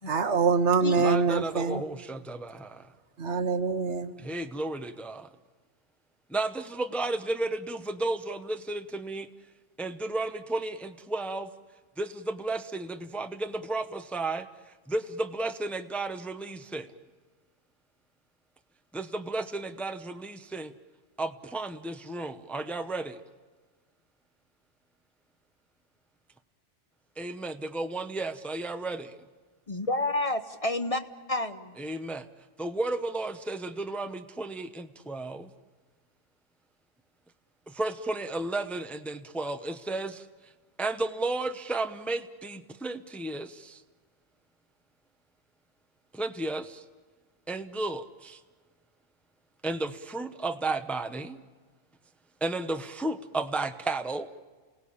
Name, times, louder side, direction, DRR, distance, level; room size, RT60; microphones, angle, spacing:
voice 1, 0.1-1.8 3.2-4.1, right 5 dB, 70° right, 10 dB, 1.6 m, -25 dB
voice 2, 1.0-2.8 4.2-5.3 6.3-9.3 9.8-11.5 12.0-14.5 14.9-16.9 18.9-20.7 21.2-23.2 27.2-29.1 31.8-32.2 32.6-35.5 37.8-40.2 40.8-43.7 46.2-46.7 47.5-48.4 49.6-51.4 52.4-54.3, right 2 dB, ahead, 8 dB, 0.7 m, -33 dB
voice 3, 29.7-31.0 31.3-31.8, left 2 dB, 30° left, 9 dB, 0.9 m, -29 dB
29.0 x 18.0 x 8.6 m, 1.4 s
omnidirectional pair, 1.2 m